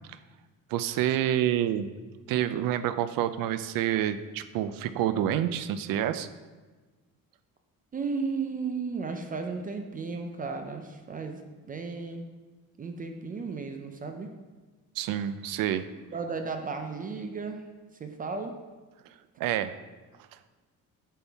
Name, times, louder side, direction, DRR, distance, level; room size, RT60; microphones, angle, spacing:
voice 1, 0.7-1.9 2.3-6.3 15.0-15.8 19.4-19.7, right 11 dB, 85° right, 12 dB, 0.5 m, -28 dB
voice 2, 7.9-11.4 11.7-12.3 12.8-14.3 16.1-17.7 18.0-18.6, right 4 dB, 25° right, 5 dB, 0.4 m, -34 dB
8.5 x 5.5 x 3.4 m, 1.3 s
cardioid pair, 170°, 33 cm